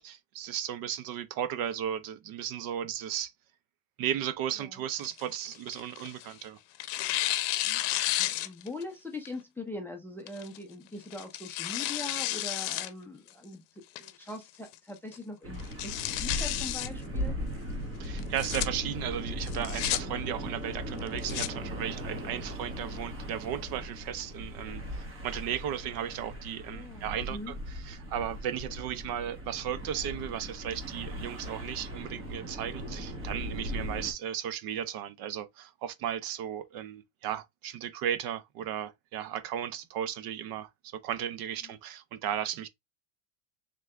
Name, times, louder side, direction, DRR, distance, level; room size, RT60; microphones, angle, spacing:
voice 1, 0.0-3.3 4.0-6.6 18.0-24.8 25.2-27.5 27.9-42.7, right 10 dB, 45° right, 0.5 m, -35 dB
Tearing, 5.0-6.3 6.8-8.8 9.3-9.4 10.3-10.6 11.1-12.9 13.3-13.4 14.0-14.4 14.7-14.8 15.1-15.2 15.6-16.9 18.2-18.7 19.4-20.0 21.0-21.5, left 16 dB, 65° left, 0.7 m, -32 dB
voice 2, 7.6-17.4 22.2-22.4 26.7-27.5 41.6-41.8, left 2 dB, 5° left, 0.4 m, -42 dB
sound 1, 15.4-34.1, equal, 25° right, 1.3 m, -38 dB
3.8 x 3.2 x 3.1 m
cardioid pair, 145°, 50 cm